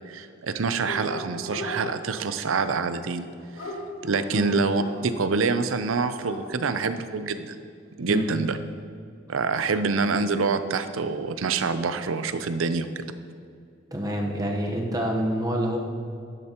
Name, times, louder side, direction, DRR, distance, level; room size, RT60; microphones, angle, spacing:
voice 1, 0.1-3.3 3.6-3.7 4.0-7.6 8.0-8.6 9.3-13.0, right 4 dB, 85° right, 11 dB, 0.6 m, -26 dB
Dog, 0.9-1.8 2.9-5.0 5.7-5.8 6.0-6.8, left 1 dB, 85° left, 2.2 m, -37 dB
voice 2, 13.9-15.8, equal, 20° right, 1 dB, 1.0 m, -27 dB
12.0 x 11.0 x 3.0 m, 2.4 s
head